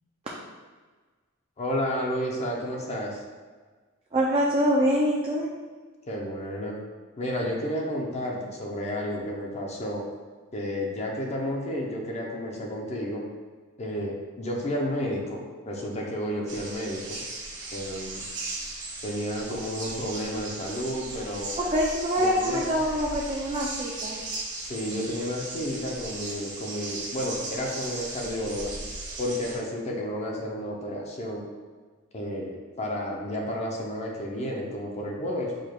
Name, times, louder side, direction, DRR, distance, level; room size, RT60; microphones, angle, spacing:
voice 1, 1.6-3.2 6.1-6.8 7.2-10.0 10.5-13.2 13.8-17.2 17.7-18.2 19.0-21.5 22.2-22.7 24.6-28.7 29.2-31.4 32.1-35.6, equal, 30° left, -1 dB, 0.6 m, -31 dB
voice 2, 4.1-5.5 21.6-24.2, equal, 30° right, -4 dB, 0.5 m, -25 dB
sound 1, 16.5-29.6, right 2 dB, 55° right, 1.5 m, -37 dB
4.9 x 2.3 x 4.4 m, 1.4 s
head